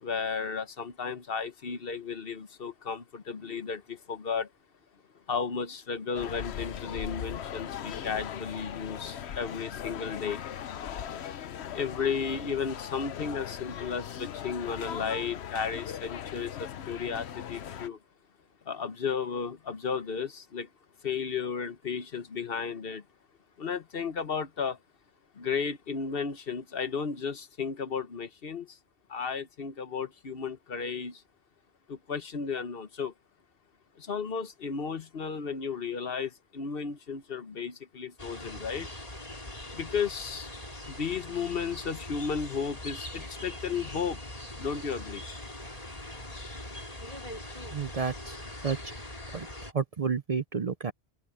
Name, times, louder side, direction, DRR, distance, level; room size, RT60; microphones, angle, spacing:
voice 1, 0.0-4.5 5.3-10.4 11.7-18.0 18.7-20.7 21.0-23.0 23.6-24.8 25.4-28.8 29.1-31.2 31.9-33.1 34.0-38.9 39.7-40.5 40.9-44.2 44.6-45.2, left 6 dB, 60° left, 1.3 m, -34 dB
sound 1, 6.1-17.9, left 9 dB, 85° left, 1.0 m, -39 dB
sound 2, 38.2-49.7, left 1 dB, 35° left, 3.6 m, -42 dB
voice 2, 47.7-48.4 48.6-48.9 49.3-49.5 49.7-50.9, right 5 dB, 45° right, 0.6 m, -31 dB
omnidirectional pair, 1.1 m